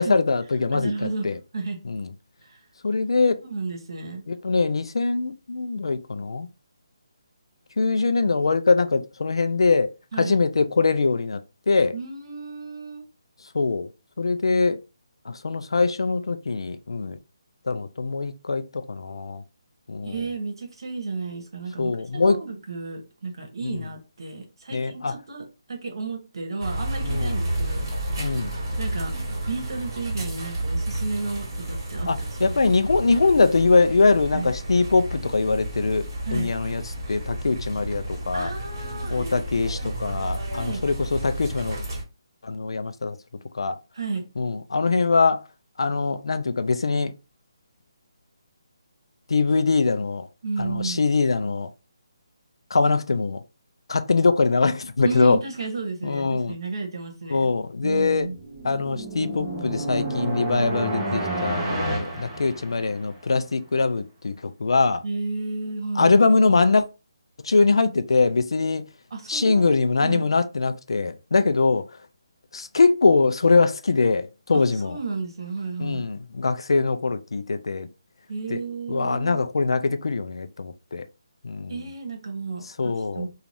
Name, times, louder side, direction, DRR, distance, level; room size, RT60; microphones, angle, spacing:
voice 1, 0.0-1.3 1.9-2.1 2.8-3.4 4.3-6.5 7.8-9.9 10.2-11.4 11.7-11.9 13.5-13.9 14.2-14.8 15.3-17.2 17.7-19.4 19.9-20.1 21.8-22.4 23.6-23.8 24.7-25.1 27.0-27.4 28.2-28.5 32.1-36.1 36.3-36.8 37.1-38.5 39.1-41.8 42.4-43.2 43.5-43.8 44.4-45.4 45.8-47.1 49.3-50.3 50.6-51.7 52.7-53.4 53.9-55.4 56.0-56.6 57.3-58.3 58.6-65.0 66.0-66.8 67.4-68.8 69.3-71.8 72.5-75.0 75.8-77.9 78.5-78.6 78.9-81.0 81.4-81.8 82.8-83.3, left 4 dB, 80° left, 0.4 m, -22 dB
voice 2, 0.7-1.3 1.5-1.8 2.4-2.6 3.5-4.2 10.1-10.4 11.9-13.1 20.0-28.3 28.8-29.2 29.5-32.7 34.3-34.5 36.2-36.5 38.3-39.9 40.5-40.8 43.9-44.3 50.4-51.0 55.0-57.5 57.8-58.4 65.0-66.2 69.1-69.7 70.0-70.3 74.5-76.1 78.3-79.4 81.7-83.3, right 3 dB, 65° right, 1.0 m, -33 dB
sound 1, 26.6-42.0, right 1 dB, 40° right, 1.2 m, -31 dB
sound 2, 58.2-63.2, right 2 dB, 10° right, 0.7 m, -30 dB
2.5 x 2.3 x 3.1 m
hypercardioid pair, 165°, 3 cm